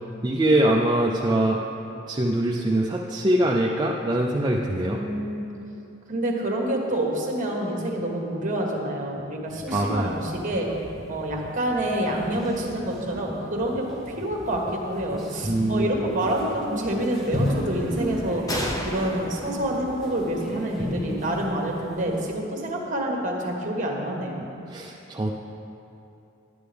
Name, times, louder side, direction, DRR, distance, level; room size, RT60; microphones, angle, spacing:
voice 1, 0.2-1.6 2.1-5.0 9.7-10.1 15.5-15.9 24.7-25.3, right 1 dB, 20° right, -2 dB, 0.5 m, -23 dB
voice 2, 4.8-5.5 6.1-10.7 11.1-13.9 14.2-18.6 18.8-24.5, right 1 dB, 40° right, 0 dB, 1.4 m, -27 dB
sound 1, 9.5-22.2, equal, ahead, 1.2 m, -35 dB
sound 2, 18.5-22.0, equal, 20° left, 0.8 m, -34 dB
11.5 x 9.6 x 3.4 m, 2.7 s
head